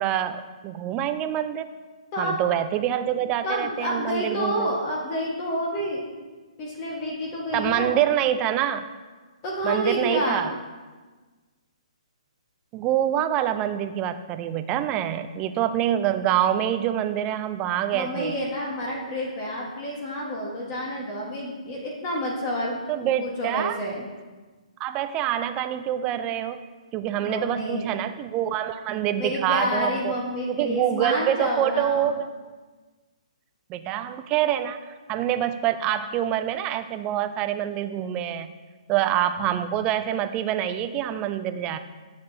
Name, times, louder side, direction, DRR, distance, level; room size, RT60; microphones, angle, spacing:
voice 1, 0.0-1.7 2.2-4.7 7.5-8.9 9.6-10.5 12.7-18.4 22.9-23.8 24.8-26.6 26.9-30.1 30.5-32.3 33.7-34.8 35.1-38.5 38.9-41.8, right 11 dB, 25° right, 10 dB, 0.4 m, -26 dB
voice 2, 3.4-6.0 6.6-8.0 9.4-10.4 17.9-24.1 27.2-27.9 29.2-32.1, equal, 30° left, -2 dB, 1.3 m, -29 dB
9.7 x 6.8 x 2.7 m, 1.3 s
hypercardioid pair, 145°, 4 cm